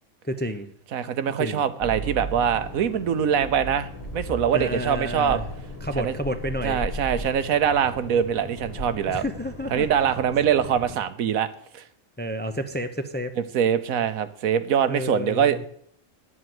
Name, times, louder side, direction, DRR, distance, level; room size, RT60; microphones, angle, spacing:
voice 1, 0.2-0.7 1.4-1.6 4.5-5.4 5.8-6.8 9.1-9.9 12.2-13.4 14.9-15.6, equal, 10° left, 7 dB, 0.5 m, -30 dB
voice 2, 0.9-5.4 6.0-6.2 6.6-9.2 9.7-11.5 11.7-11.8 13.5-15.7, right 8 dB, 85° right, 12 dB, 1.3 m, -23 dB
sound 1, 1.8-11.0, equal, 45° left, 2.3 m, -36 dB
10.5 x 7.8 x 7.8 m, 0.65 s
omnidirectional pair, 1.4 m